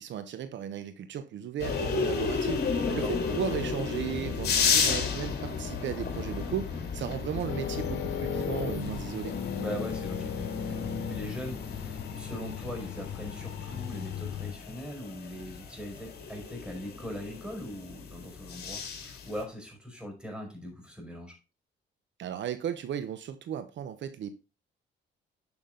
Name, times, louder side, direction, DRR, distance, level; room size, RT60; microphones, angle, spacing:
voice 1, 0.0-9.3 22.2-24.3, right 9 dB, 70° right, 10 dB, 1.0 m, -35 dB
sound 1, 1.6-19.4, left 5 dB, 55° left, 3.0 m, -33 dB
sound 2, 7.5-14.5, left 7 dB, 70° left, 1.6 m, -36 dB
voice 2, 9.6-21.4, equal, 5° right, 2 dB, 5.5 m, -40 dB
11.0 x 6.0 x 3.9 m, 0.30 s
cardioid pair, 90°, 20 cm